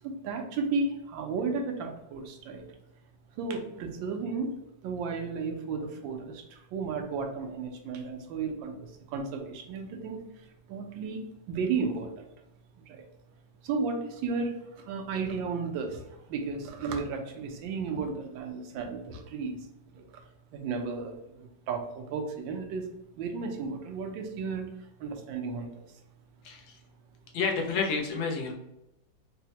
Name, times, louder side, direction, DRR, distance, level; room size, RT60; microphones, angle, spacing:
voice 1, 0.0-2.6 3.4-4.6 4.8-12.3 12.9-13.0 13.6-19.6 19.9-20.2 20.5-22.9 23.2-24.7 25.0-26.0, right 4 dB, 85° right, 4 dB, 1.3 m, -34 dB
voice 2, 26.4-26.8 27.3-28.5, left 5 dB, 80° left, 0 dB, 1.4 m, -30 dB
4.5 x 2.0 x 2.8 m, 0.87 s
omnidirectional pair, 2.0 m